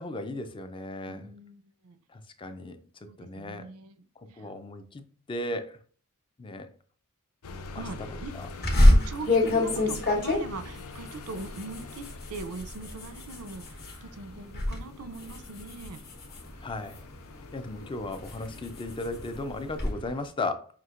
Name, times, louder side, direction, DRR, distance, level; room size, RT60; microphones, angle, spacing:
voice 1, 0.0-1.3 2.1-2.8 3.2-3.7 4.4-5.8 6.4-6.7 7.7-7.8 8.4-8.5 9.5-9.6 16.6-17.0 17.5-20.7, left 2 dB, 25° left, 0.4 m, -36 dB
voice 2, 1.1-2.0 3.0-4.0 4.3-4.5 7.8-8.3 8.8-16.0, right 3 dB, 70° right, 0.5 m, -41 dB
sound 1, 7.4-20.3, left 3 dB, 75° left, 0.5 m, -45 dB
sound 2, 8.6-14.0 14.4-14.8 15.1-17.2 17.7-19.9, left 1 dB, 45° left, 1.1 m, -25 dB
5.8 x 2.7 x 2.4 m
head